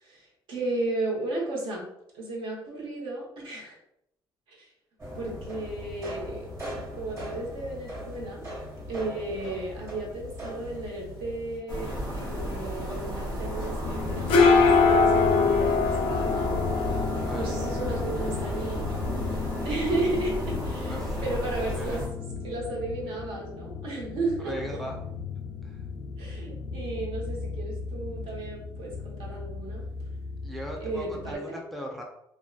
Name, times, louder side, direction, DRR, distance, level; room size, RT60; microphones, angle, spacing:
voice 1, 0.0-1.9 2.1-3.8 4.5-4.7 5.1-6.5 6.9-8.4 8.9-16.5 17.3-18.8 19.6-20.9 21.2-22.0 22.4-24.5 26.2-29.8 30.8-31.6, right 2 dB, 70° right, -2 dB, 0.9 m, -34 dB
sound 1, 5.0-11.6, equal, 35° right, 1.3 m, -39 dB
sound 2, 11.7-22.1, equal, 50° right, 1.2 m, -33 dB
sound 3, 13.9-31.3, left 4 dB, 80° left, 0.5 m, -27 dB
voice 2, 17.2-17.6 18.4-18.5 20.9-22.0 24.4-25.0 25.6-25.8 30.4-32.0, equal, ahead, 0 dB, 0.4 m, -38 dB
2.6 x 2.1 x 2.3 m, 0.76 s
cardioid pair, 120°, 9 cm